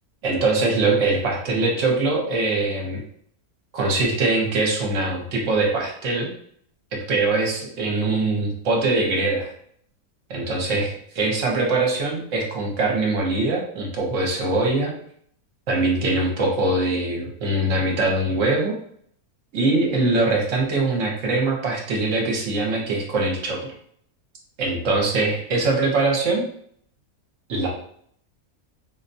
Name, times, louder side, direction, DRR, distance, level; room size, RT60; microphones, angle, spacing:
voice 1, 0.2-3.0 3.7-6.3 7.1-9.5 10.3-14.9 15.7-18.7 19.5-23.6 24.6-26.4 27.5-27.7, right 2 dB, 60° right, 0 dB, 1.1 m, -22 dB
4.0 x 2.2 x 2.6 m, 0.64 s
omnidirectional pair, 1.6 m